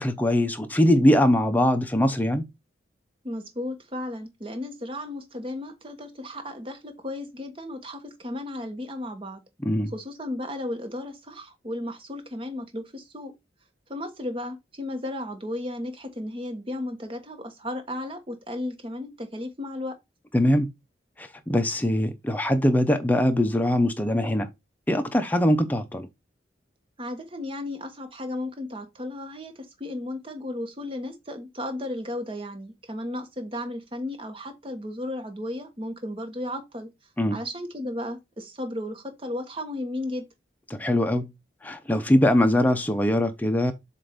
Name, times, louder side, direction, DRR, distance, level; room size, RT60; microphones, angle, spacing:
voice 1, 0.0-2.5 9.6-9.9 20.3-20.7 21.2-24.5 24.9-26.1 37.2-37.4 40.7-41.3 41.6-43.7, left 1 dB, 10° left, 0.7 m, -22 dB
voice 2, 3.2-9.4 9.9-13.3 13.9-20.0 27.0-36.9 37.3-40.2, left 1 dB, 30° right, 1.2 m, -34 dB
7.4 x 2.6 x 5.1 m
head